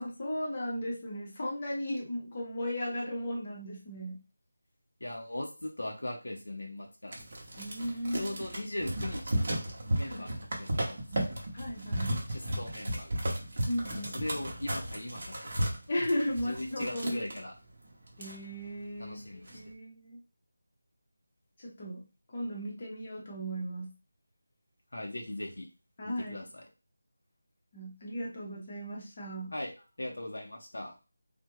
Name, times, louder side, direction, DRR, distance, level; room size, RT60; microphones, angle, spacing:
voice 1, 0.0-4.2 7.6-8.4 10.1-10.3 11.5-12.1 13.7-14.2 15.9-17.3 18.2-20.2 21.6-22.0 22.3-23.9 26.0-26.5 27.7-29.5, equal, 20° left, -2 dB, 0.7 m, -36 dB
voice 2, 5.0-7.2 8.2-9.6 9.9-11.0 12.3-13.2 13.9-15.5 16.4-17.5 19.0-19.5 24.9-25.7 26.0-26.6 29.5-29.7 30.0-30.9, left 1 dB, 70° left, 0 dB, 0.6 m, -39 dB
sound 1, 7.1-17.4 17.8-17.9 18.1-18.8 19.2-19.6, right 1 dB, 30° right, 0.7 m, -34 dB
3.4 x 2.1 x 3.0 m, 0.31 s
figure-of-eight pair, 180°, 0 cm